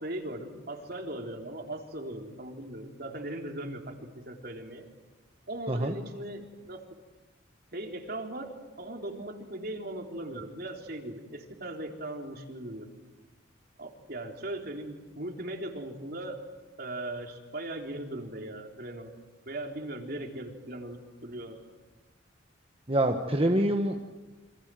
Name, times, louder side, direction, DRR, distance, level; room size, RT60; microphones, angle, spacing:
voice 1, 0.0-4.9 5.5-6.8 7.7-12.9 13.8-16.4 16.8-19.1 19.5-21.6, right 1 dB, 50° right, 3 dB, 3.7 m, -39 dB
voice 2, 22.9-24.0, right 1 dB, 30° right, 3 dB, 1.4 m, -25 dB
28.5 x 26.5 x 7.8 m, 1.2 s
head